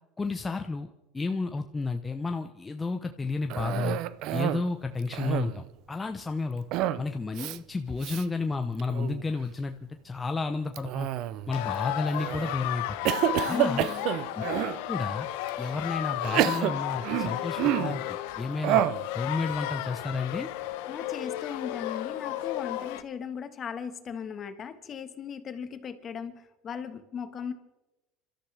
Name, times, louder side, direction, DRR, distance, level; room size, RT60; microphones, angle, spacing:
voice 1, 0.2-4.0 4.3-6.6 7.0-9.7 10.0-11.1 11.5-13.0 13.5-13.9 14.4-14.5 14.9-15.3 15.6-18.8 19.1-20.5, left 3 dB, 20° left, 6 dB, 0.9 m, -31 dB
Cough, 3.5-4.7 5.0-5.7 6.7-7.1 7.3-7.6 8.0-8.2 8.8-9.2 10.8-11.5 12.1-12.5 13.0-14.8 15.5-15.6 16.2-18.0 18.6-19.1, right 13 dB, 65° right, 0.6 m, -28 dB
sound 1, 11.5-23.0, left 13 dB, 80° left, 1.0 m, -33 dB
voice 2, 13.4-14.1 20.9-27.5, left 7 dB, 40° left, 9 dB, 1.5 m, -37 dB
28.0 x 13.0 x 3.4 m, 0.99 s
supercardioid pair, 90°, 0 cm